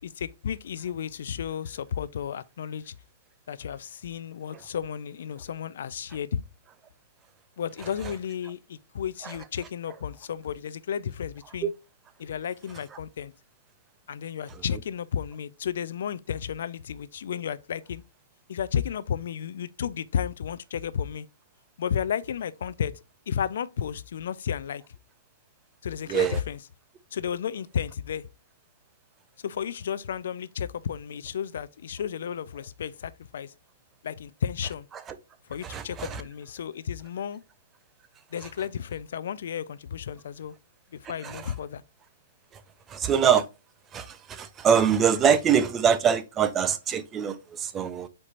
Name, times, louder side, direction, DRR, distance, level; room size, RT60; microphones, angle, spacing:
voice 1, 0.0-3.0 3.5-6.4 7.6-11.7 12.2-13.3 14.1-18.0 18.5-21.3 21.8-22.9 23.3-24.8 25.8-26.6 27.1-28.3 29.4-33.5 34.0-34.9 35.5-37.4 38.3-40.5 40.9-41.8, left 8 dB, 60° left, 0.4 m, -33 dB
voice 2, 26.1-26.4 35.6-36.2 41.0-41.5 42.9-43.5 43.9-48.1, right 7 dB, 15° right, 0.4 m, -24 dB
4.5 x 4.3 x 2.5 m
hypercardioid pair, 160°, 0 cm